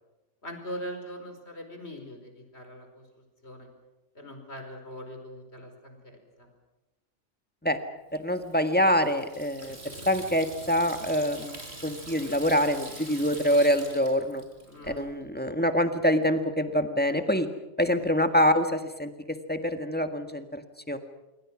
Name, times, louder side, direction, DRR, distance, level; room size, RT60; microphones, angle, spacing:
voice 1, 0.4-3.1 3.4-3.7 4.1-6.5 14.7-15.1 15.5-15.6, equal, 60° left, 5 dB, 5.0 m, -41 dB
voice 2, 8.2-9.8 10.0-14.4 14.9-17.5 17.8-19.1 19.5-21.0, equal, 10° left, 7 dB, 1.7 m, -25 dB
Water tap faucet / Sink (filling or washing), 8.3-15.0, right 1 dB, 60° right, 4.8 m, -44 dB
27.0 x 24.0 x 6.3 m, 1.0 s
omnidirectional pair, 1.3 m